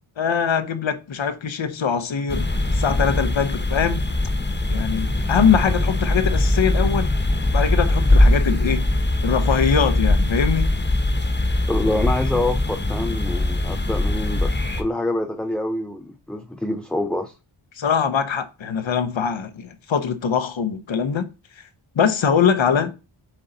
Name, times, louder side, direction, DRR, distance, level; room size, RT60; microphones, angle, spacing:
voice 1, 0.2-2.5 2.7-4.0 4.7-7.1 7.5-8.9 9.2-10.7 17.8-21.3 21.9-23.0, left 7 dB, 65° left, 0.8 m, -22 dB
sound 1, 2.3-14.8, left 1 dB, 20° left, 1.1 m, -21 dB
voice 2, 11.7-14.5 14.8-17.3, left 1 dB, ahead, 0.3 m, -26 dB
7.8 x 3.9 x 4.0 m
wide cardioid pair, 110°, 50 cm